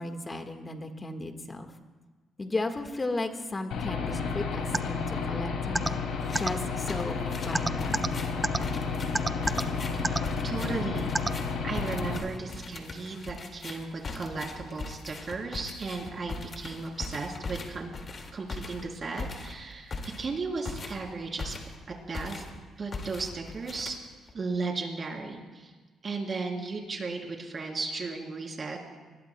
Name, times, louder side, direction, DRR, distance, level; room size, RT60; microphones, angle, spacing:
voice 1, 0.0-1.7 2.4-6.1 6.4-8.0, left 2 dB, 25° left, 6 dB, 1.5 m, -35 dB
Aircraft / Engine, 3.7-12.2, left 5 dB, 85° left, 2.4 m, -32 dB
sound 1, 4.7-4.8 5.7-5.9 6.3-6.5 7.5-8.1 8.4-8.6 9.1-9.6 10.0-10.2 11.1-11.3, right 2 dB, 20° right, 0.5 m, -25 dB
sound 2, 6.2-6.5 6.9-21.9 22.1-22.6 22.9-24.3, left 3 dB, 40° left, 2.0 m, -40 dB
voice 2, 9.9-11.1 11.6-17.9 18.3-21.5 21.9-22.4 22.8-24.0 24.3-25.7 26.0-28.8, right 3 dB, 40° right, 0 dB, 3.5 m, -35 dB
26.5 x 20.5 x 2.2 m, 1.3 s
cardioid pair, 90°, 0 cm